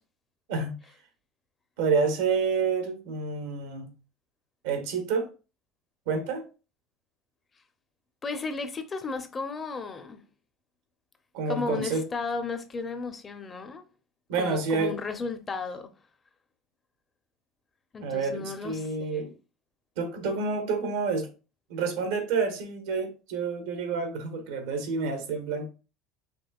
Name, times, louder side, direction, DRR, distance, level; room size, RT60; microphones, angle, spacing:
voice 1, 1.8-3.9 4.6-5.3 6.1-6.5 11.3-12.0 14.3-14.9 18.0-19.3 20.0-21.3 21.7-25.7, right 4 dB, 85° right, 1.1 m, -28 dB
voice 2, 8.2-10.2 11.5-13.9 14.4-15.9 17.9-19.3, left 4 dB, 25° left, 0.6 m, -34 dB
5.3 x 3.1 x 2.3 m
supercardioid pair, 115°, 0 cm